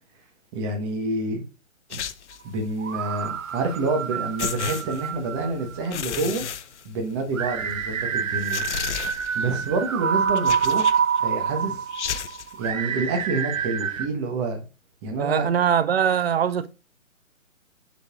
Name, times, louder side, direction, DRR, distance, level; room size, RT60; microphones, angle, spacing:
voice 1, 0.5-1.4 1.9-2.0 2.4-6.5 6.8-8.7 9.3-11.9 12.6-14.6 15.0-15.6, right 3 dB, 20° right, 1.1 m, -28 dB
sound 1, 1.9-2.5 3.9-4.0 4.4-5.4 5.8-7.4 7.7-7.8 8.4-9.5 10.3-11.2 11.9-12.5, left 8 dB, 60° left, 0.6 m, -32 dB
sound 2, 2.8-5.9 7.3-14.1, right 7 dB, 70° right, 0.8 m, -27 dB
voice 2, 15.2-16.7, right 8 dB, 50° right, 0.6 m, -22 dB
10.5 x 4.0 x 2.4 m
figure-of-eight pair, 140°, 41 cm